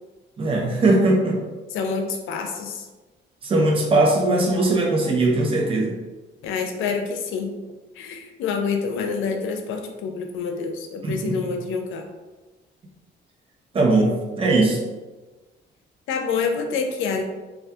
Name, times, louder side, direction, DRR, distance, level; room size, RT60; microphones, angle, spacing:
voice 1, 0.4-1.4 3.4-5.9 11.0-11.4 13.7-14.8, right 2 dB, 30° right, -1 dB, 0.5 m, -20 dB
voice 2, 1.7-2.9 6.4-7.6 8.0-12.0 16.1-17.2, left 5 dB, 85° left, 4 dB, 0.4 m, -27 dB
2.3 x 2.2 x 2.6 m, 1.2 s
cardioid pair, 90°, 20 cm